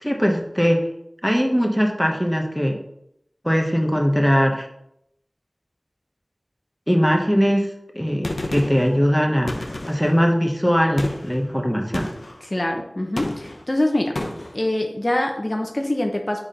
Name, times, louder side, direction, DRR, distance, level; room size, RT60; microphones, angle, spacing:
voice 1, 0.0-0.8 1.2-2.8 3.4-4.7 6.9-7.7 7.9-12.1, equal, ahead, 1 dB, 1.1 m, -20 dB
Gunshot gunfire, 8.2-8.9 9.5-10.2 11.0-11.4 11.9-12.4 13.2-13.7 14.2-14.6, left 1 dB, 75° left, 0.8 m, -30 dB
voice 2, 12.5-14.2 14.5-16.4, left 1 dB, 40° left, 3 dB, 0.7 m, -24 dB
4.9 x 4.2 x 5.0 m, 0.79 s
wide cardioid pair, 45°, 0 cm